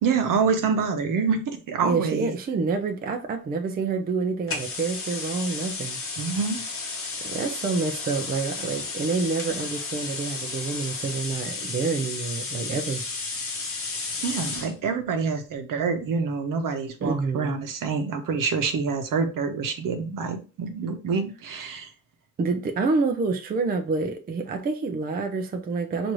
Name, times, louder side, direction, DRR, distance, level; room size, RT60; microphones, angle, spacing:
voice 1, 0.0-2.3 6.2-6.6 14.2-21.9, right 5 dB, 75° right, 0.9 m, -26 dB
voice 2, 1.8-6.0 7.2-13.0 17.0-17.6 22.4-26.1, right 4 dB, 30° right, 0.5 m, -27 dB
sound 1, 4.5-14.7, left 4 dB, 40° left, 0.9 m, -33 dB
6.0 x 2.6 x 3.1 m
wide cardioid pair, 175°, 33 cm